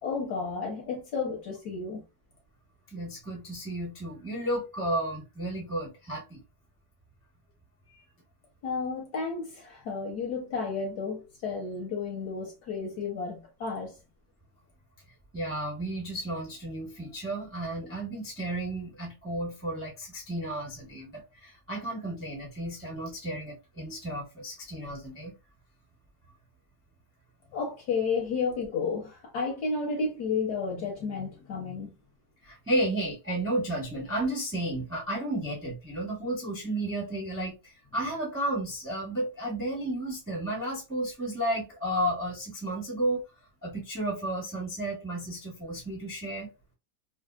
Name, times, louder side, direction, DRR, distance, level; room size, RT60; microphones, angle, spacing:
voice 1, 0.0-2.0 8.6-13.9 27.5-31.9, left 4 dB, 60° left, 1.2 m, -32 dB
voice 2, 2.9-6.4 15.3-25.3 32.5-37.5 37.9-43.2 43.6-46.5, right 1 dB, 20° right, 0.4 m, -32 dB
3.4 x 2.4 x 2.3 m
omnidirectional pair, 2.4 m